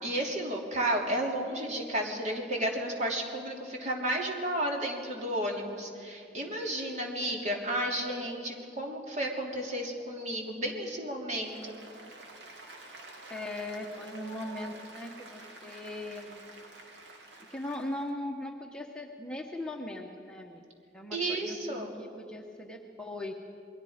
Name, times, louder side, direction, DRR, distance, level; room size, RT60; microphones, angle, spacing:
voice 1, 0.0-11.8 21.1-21.9, right 1 dB, 40° right, 0 dB, 3.1 m, -32 dB
Applause, 11.3-18.1, right 2 dB, 80° right, 2.7 m, -49 dB
voice 2, 13.3-16.4 17.5-20.6 20.9-23.3, left 1 dB, 5° left, 1 dB, 1.1 m, -39 dB
28.5 x 21.5 x 5.1 m, 2.4 s
head